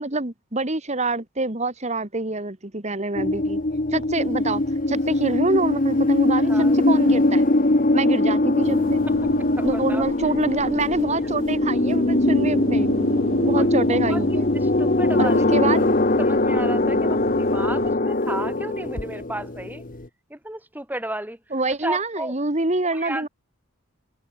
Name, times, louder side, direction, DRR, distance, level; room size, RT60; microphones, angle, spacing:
voice 1, 0.0-3.6 3.9-4.6 4.9-7.5 7.9-9.0 9.6-12.9 13.4-14.5 15.2-15.9 21.5-23.3, right 2 dB, 30° right, 1.6 m, -26 dB
sound 1, 3.1-20.0, left 2 dB, 40° left, 1.1 m, -21 dB
sound 2, 8.6-18.0, right 1 dB, 70° right, 7.6 m, -36 dB
voice 2, 9.6-10.0 13.6-15.5 15.7-15.8 16.2-19.8 20.3-21.4 21.7-22.3 22.9-23.3, right 1 dB, 10° right, 2.9 m, -33 dB
head